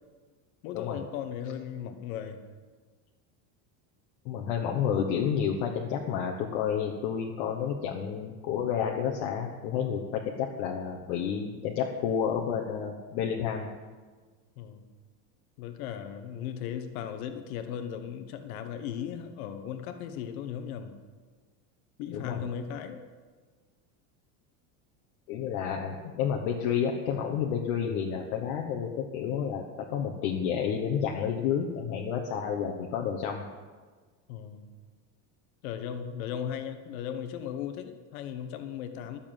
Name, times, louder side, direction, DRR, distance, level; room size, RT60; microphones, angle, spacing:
voice 1, 0.6-2.4 14.6-14.9 15.6-21.0 22.0-23.0 34.3-34.7 35.6-39.2, left 9 dB, 70° left, 8 dB, 1.3 m, -37 dB
voice 2, 4.2-13.7 22.1-22.4 25.3-33.5, left 7 dB, 50° left, 1 dB, 1.3 m, -30 dB
12.5 x 7.3 x 9.0 m, 1.4 s
cardioid pair, 180°, 43 cm